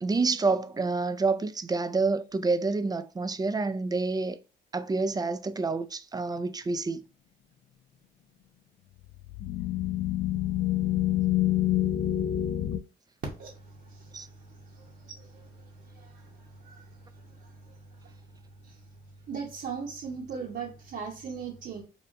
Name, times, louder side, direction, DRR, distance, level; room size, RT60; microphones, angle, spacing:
voice 1, 0.0-4.4 4.7-7.0 14.1-14.3, right 3 dB, 20° right, 0.4 m, -28 dB
sound 1, 9.1-12.8, left 13 dB, 60° left, 0.5 m, -27 dB
voice 2, 14.8-15.5 15.9-16.3 16.6-16.8 17.4-17.5 19.3-21.8, right 6 dB, 60° right, 1.0 m, -38 dB
5.4 x 2.2 x 2.5 m
cardioid pair, 90°, 20 cm